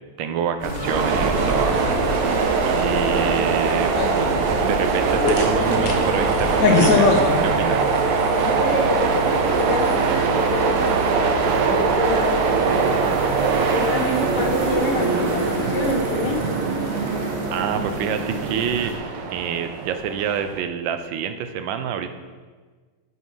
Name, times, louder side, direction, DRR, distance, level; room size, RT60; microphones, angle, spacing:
voice 1, 0.2-2.4 2.6-3.9 4.6-7.1 7.4-8.0 17.5-18.9 19.3-22.1, right 8 dB, 70° right, 9 dB, 1.2 m, -27 dB
sound 1, 0.6-7.7, left 3 dB, 50° left, 1.2 m, -24 dB
sound 2, 0.6-18.9, right 2 dB, 40° right, 2.0 m, -29 dB
sound 3, 0.8-20.6, right 5 dB, 85° right, 1.7 m, -23 dB
voice 2, 8.3-13.4 13.7-16.5, left 2 dB, 90° left, 1 dB, 2.3 m, -27 dB
9.6 x 6.1 x 5.5 m, 1.5 s
omnidirectional pair, 2.4 m